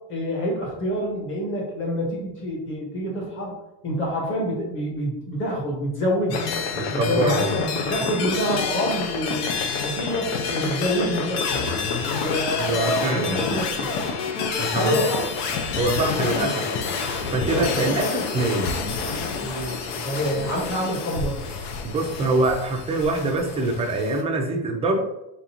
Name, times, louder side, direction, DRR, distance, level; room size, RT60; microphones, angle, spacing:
voice 1, 0.1-3.5 3.8-6.5 6.9-9.5 9.8-11.7 12.2-14.0 14.8-15.2 17.5-17.9 19.4-21.4, equal, 30° left, -2 dB, 1.3 m, -27 dB
sound 1, 6.3-24.2, left 5 dB, 75° left, 0.8 m, -28 dB
voice 2, 6.7-7.5 12.6-13.5 14.6-15.0 15.8-16.6 17.3-18.8 21.8-25.0, right 2 dB, 15° right, 1 dB, 0.4 m, -24 dB
4.0 x 3.8 x 2.9 m, 0.90 s
cardioid pair, 170°, 43 cm